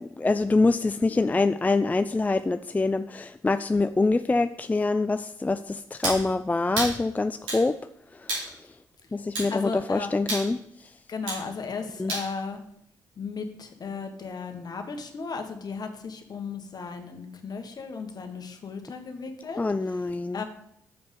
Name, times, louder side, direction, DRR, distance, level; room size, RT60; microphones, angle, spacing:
voice 1, 0.0-7.8 8.2-8.3 9.1-10.6 12.0-12.1 19.6-20.4, left 3 dB, 20° left, 11 dB, 0.3 m, -25 dB
sound 1, 6.0-6.2 6.8-7.0 7.5-7.7 8.3-8.5 9.3-9.5 10.3-10.5 11.3-11.4 12.1-12.3, right 2 dB, 85° right, 3.0 m, -29 dB
voice 2, 9.5-10.1 11.1-12.6 13.2-20.0 20.3-20.4, left 5 dB, 50° left, 5 dB, 1.4 m, -35 dB
6.8 x 5.3 x 5.4 m, 0.72 s
hypercardioid pair, 40°, 8 cm